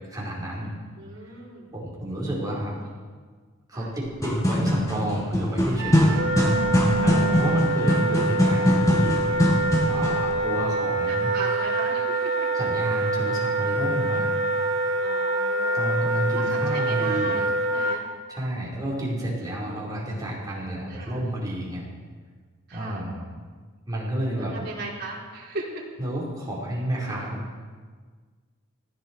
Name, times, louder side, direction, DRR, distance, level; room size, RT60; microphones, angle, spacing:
voice 1, 0.1-0.7 1.2-1.3 1.7-2.7 3.7-6.2 6.9-9.6 9.9-11.3 12.5-14.3 15.7-17.4 18.3-21.8 22.7-23.2 23.9-24.5 26.0-27.6, right 1 dB, 20° right, -5 dB, 4.7 m, -30 dB
voice 2, 1.0-1.7 3.7-3.9 7.2-7.8 11.1-12.5 15.0-18.0 20.9-21.2 22.7-23.0 24.3-25.8, right 3 dB, 50° right, -4 dB, 4.2 m, -37 dB
sound 1, 4.1-10.3, equal, 15° left, 2.0 m, -22 dB
Wind instrument woodwind instrument, 5.8-18.0, right 2 dB, 80° right, 2.3 m, -25 dB
19.0 x 16.0 x 4.7 m, 1.5 s
head